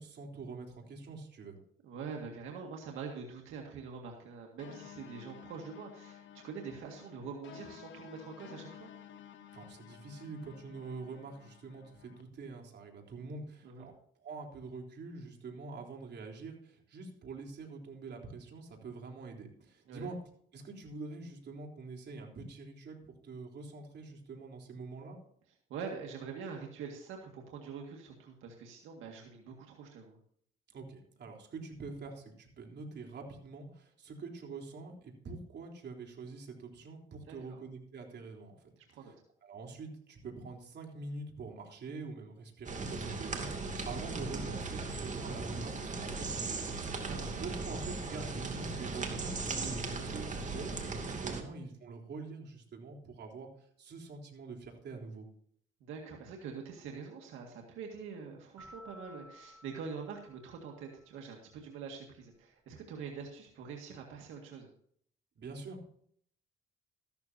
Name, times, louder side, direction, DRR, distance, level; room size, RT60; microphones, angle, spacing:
voice 1, 0.0-1.6 9.5-13.9 14.2-20.2 20.5-25.2 30.7-39.1 39.4-46.7 47.3-55.3 65.4-65.9, right 3 dB, 60° right, 1 dB, 3.7 m, -45 dB
voice 2, 1.8-8.9 13.6-13.9 19.9-20.1 25.7-30.2 37.3-37.6 39.0-39.1 47.1-47.4 51.3-51.5 55.8-64.7, right 5 dB, 90° right, 1 dB, 2.0 m, -45 dB
sound 1, 4.6-12.2, left 10 dB, 70° left, 1.3 m, -53 dB
sound 2, 42.7-51.4, right 3 dB, 40° right, 2.6 m, -38 dB
sound 3, 58.6-61.3, equal, 10° right, 3.2 m, -56 dB
14.0 x 12.5 x 2.8 m, 0.64 s
cardioid pair, 90°, 20 cm